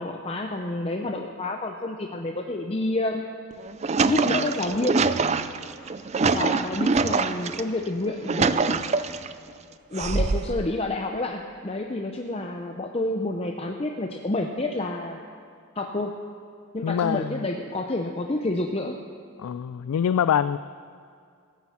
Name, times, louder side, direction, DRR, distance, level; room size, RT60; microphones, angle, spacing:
voice 1, 0.0-3.3 4.0-5.1 6.2-8.8 9.9-15.2 15.8-16.1 16.7-19.0, left 2 dB, 25° left, 2 dB, 0.6 m, -29 dB
sound 1, 3.5-7.6 8.1-9.3 10.0-10.7, right 4 dB, 30° right, 0.4 m, -24 dB
voice 2, 16.8-17.4 19.4-20.6, left 8 dB, 85° left, 13 dB, 0.3 m, -24 dB
16.5 x 9.8 x 7.3 m, 2.3 s
head